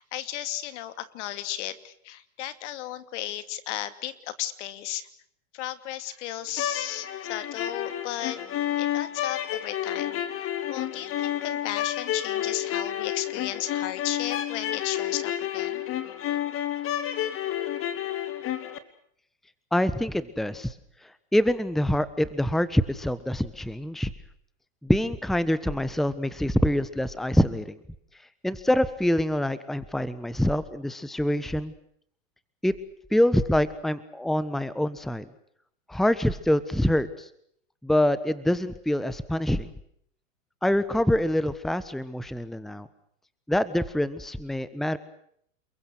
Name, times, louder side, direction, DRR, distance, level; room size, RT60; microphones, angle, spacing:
voice 1, 0.0-5.1 5.5-8.4 8.8-15.8, left 13 dB, 60° left, 12 dB, 2.8 m, -35 dB
sound 1, 6.5-18.8, left 11 dB, 35° left, 2.8 m, -30 dB
voice 2, 19.7-20.7 21.3-24.1 24.8-27.8 28.4-31.7 32.6-32.7 33.1-35.2 35.9-37.3 37.8-39.7 40.6-42.9 43.5-45.0, left 1 dB, ahead, 15 dB, 1.3 m, -25 dB
29.0 x 23.0 x 6.3 m, 0.69 s
hypercardioid pair, 115°, 39 cm